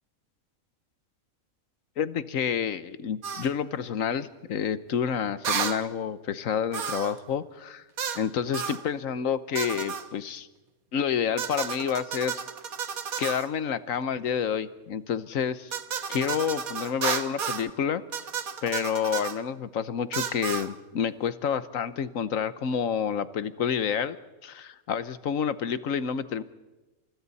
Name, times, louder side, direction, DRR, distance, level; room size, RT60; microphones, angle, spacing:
voice 1, 2.0-7.8 8.1-10.5 10.9-12.4 13.2-15.7 16.1-18.0 18.6-24.2 24.4-26.4, left 7 dB, 70° left, 14 dB, 1.3 m, -29 dB
sound 1, 3.2-3.5 5.4-5.8 6.7-7.2 8.0-8.2 8.5-8.8 9.5-10.1 11.4-13.5 15.7-17.7 18.1-19.4 20.1-20.7, right 7 dB, 80° right, 1.6 m, -32 dB
29.5 x 27.5 x 4.2 m, 1.1 s
omnidirectional pair, 1.5 m